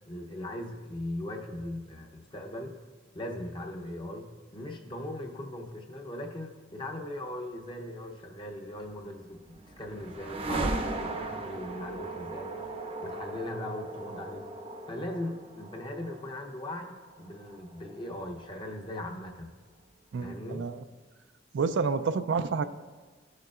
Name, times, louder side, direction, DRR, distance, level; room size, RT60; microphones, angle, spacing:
voice 1, 0.1-2.8 3.1-14.5 14.9-19.5 20.2-20.6, left 1 dB, 25° left, 2 dB, 0.7 m, -39 dB
sound 1, 9.0-19.1, right 2 dB, 30° right, 0.6 m, -38 dB
voice 2, 20.1-20.8 21.5-22.6, right 5 dB, 75° right, 12 dB, 0.3 m, -29 dB
13.0 x 6.5 x 2.4 m, 1.4 s
head